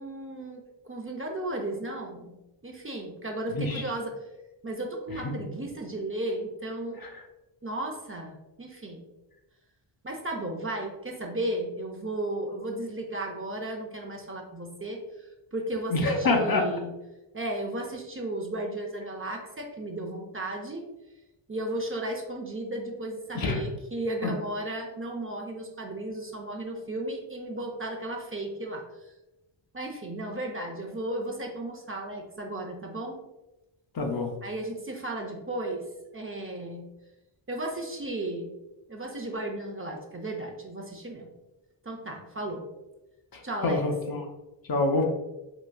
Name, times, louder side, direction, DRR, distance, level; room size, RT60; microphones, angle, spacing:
voice 1, 0.0-2.4 2.6-4.2 4.6-7.0 7.6-9.1 10.0-15.0 15.5-16.9 17.3-20.8 21.5-28.8 29.7-33.2 34.4-35.9 36.1-36.8 37.5-38.5 38.9-41.3 41.8-42.7 43.4-43.8, right 1 dB, 25° right, 1 dB, 0.6 m, -34 dB
voice 2, 15.9-16.7 23.3-23.6 24.2-24.3 33.9-34.3 43.3-44.3 44.7-45.0, left 3 dB, 45° left, 2 dB, 0.6 m, -26 dB
3.9 x 2.3 x 2.2 m, 0.98 s
cardioid pair, 50°, 50 cm